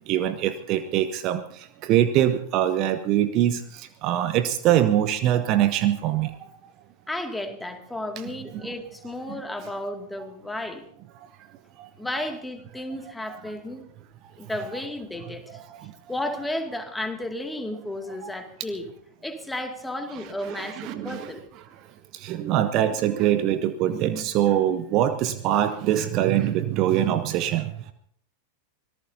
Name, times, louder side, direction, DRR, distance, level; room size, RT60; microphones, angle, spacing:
voice 1, 0.1-6.5 11.8-11.9 13.3-13.4 15.7-15.9 18.2-18.3 20.5-21.3 22.1-27.9, right 11 dB, 40° right, 11 dB, 0.8 m, -23 dB
voice 2, 7.1-10.8 12.0-13.8 14.4-15.6 16.1-18.9 19.2-21.4, left 1 dB, 5° left, 5 dB, 2.3 m, -33 dB
25.0 x 18.0 x 2.8 m, 0.66 s
figure-of-eight pair, 90°, 0 cm